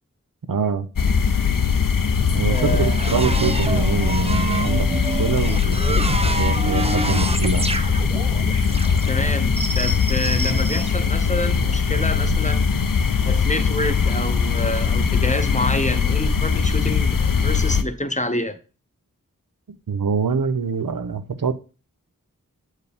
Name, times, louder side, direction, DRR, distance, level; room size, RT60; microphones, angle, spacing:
voice 1, 0.5-0.9 2.3-6.1 6.3-7.7 19.9-21.5, right 5 dB, 90° right, 0.7 m, -25 dB
sound 1, 1.0-17.8, left 5 dB, 85° left, 0.6 m, -21 dB
voice 2, 2.5-2.9 9.1-12.7 13.2-18.6, left 1 dB, 20° left, 0.8 m, -27 dB
sound 2, 2.5-10.9, right 2 dB, 20° right, 0.5 m, -28 dB
7.9 x 4.6 x 3.5 m
wide cardioid pair, 45°, 32 cm